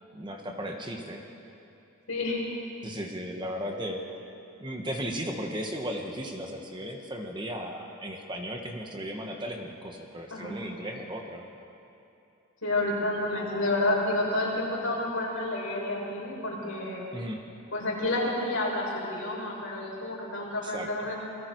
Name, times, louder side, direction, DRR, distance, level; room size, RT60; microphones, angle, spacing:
voice 1, 0.1-1.2 2.8-4.0 4.6-11.4 17.1-17.4 20.6-21.1, equal, 20° right, 2 dB, 1.5 m, -36 dB
voice 2, 2.1-2.4 10.3-10.6 12.6-17.1 17.7-21.1, left 2 dB, 65° left, -4 dB, 6.6 m, -29 dB
29.0 x 22.0 x 4.8 m, 2.8 s
head